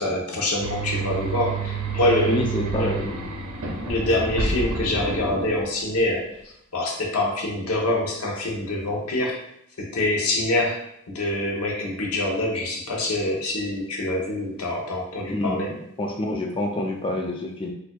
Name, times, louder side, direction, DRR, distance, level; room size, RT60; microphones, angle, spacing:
voice 1, 0.0-2.4 2.7-3.1 3.7-9.4 9.8-10.8 11.1-15.7, left 1 dB, 80° left, -1 dB, 0.8 m, -25 dB
sound 1, 0.6-6.0, right 4 dB, 70° right, 0.6 m, -29 dB
voice 2, 2.3-3.3 15.3-17.7, left 1 dB, 20° left, 1 dB, 0.3 m, -27 dB
4.2 x 2.5 x 2.2 m, 0.74 s
head